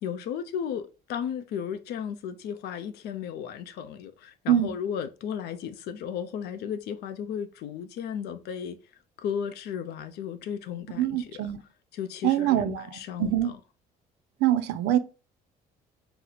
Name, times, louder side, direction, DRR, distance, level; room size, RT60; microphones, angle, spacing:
voice 1, 0.0-8.8 9.2-11.5 11.9-13.6, left 8 dB, 75° left, 0.5 m, -34 dB
voice 2, 11.0-11.6 12.2-13.5 14.4-15.0, right 11 dB, 90° right, 0.4 m, -24 dB
2.8 x 2.0 x 3.9 m
cardioid pair, 110°, 17 cm